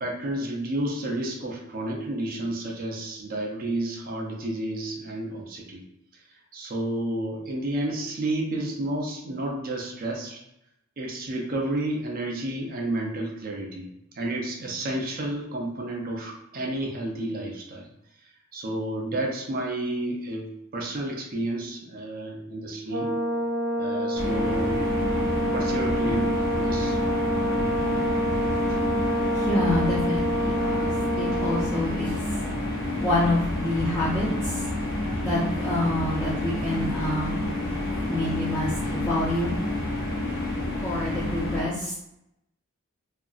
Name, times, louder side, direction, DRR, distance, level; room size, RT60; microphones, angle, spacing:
voice 1, 0.0-5.8 6.5-10.4 11.0-13.9 14.1-17.9 18.5-23.1 23.8-24.8 25.1-27.0, right 1 dB, 45° right, 0 dB, 0.5 m, -31 dB
Brass instrument, 22.9-31.8, equal, 85° right, 0.6 m, -27 dB
sound 1, 24.2-41.6, left 1 dB, 70° left, 0.8 m, -29 dB
voice 2, 29.3-32.1 33.0-34.6 35.2-37.4 38.1-39.6 40.8-41.9, left 1 dB, 15° left, -8 dB, 0.5 m, -27 dB
2.8 x 2.5 x 2.4 m, 0.83 s
head